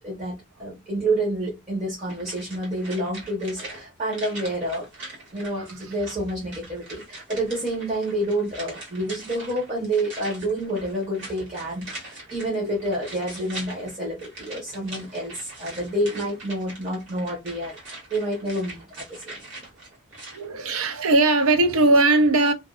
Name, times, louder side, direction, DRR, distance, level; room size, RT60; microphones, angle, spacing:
voice 1, 0.0-4.9 5.3-19.3, right 1 dB, 35° right, 0.9 m, -28 dB
sound 1, 2.1-20.5 20.7-20.8, right 2 dB, 60° right, 1.4 m, -42 dB
voice 2, 20.3-22.5, right 2 dB, 80° right, 0.5 m, -19 dB
2.6 x 2.2 x 2.3 m
head